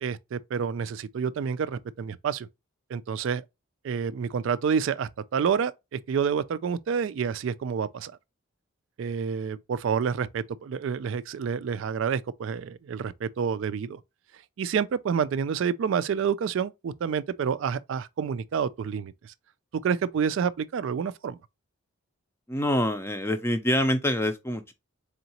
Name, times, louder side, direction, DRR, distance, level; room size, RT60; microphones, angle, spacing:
voice 1, 0.0-2.5 2.9-3.4 3.8-8.1 9.0-14.0 14.6-19.3 19.7-21.4, right 7 dB, 65° right, 0.3 m, -28 dB
voice 2, 22.5-24.7, left 1 dB, 10° left, 0.4 m, -26 dB
3.9 x 3.6 x 2.8 m
head